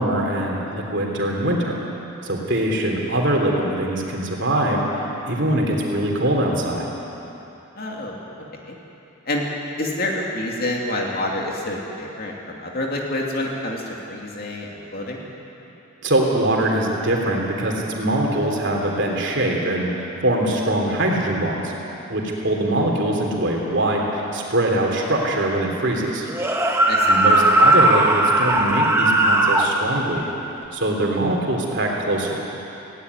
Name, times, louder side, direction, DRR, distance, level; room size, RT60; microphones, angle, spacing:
voice 1, 0.0-1.8 2.2-6.9 16.0-21.7 22.1-26.3 27.1-30.3 30.7-32.4, right 1 dB, 55° right, -1 dB, 3.4 m, -22 dB
voice 2, 7.7-8.8 9.3-9.5 9.8-15.2 26.9-27.1, left 1 dB, 45° left, -1 dB, 2.7 m, -28 dB
sound 1, 26.3-29.7, right 1 dB, 10° right, 1.3 m, -17 dB
18.5 x 17.0 x 9.7 m, 3.0 s
head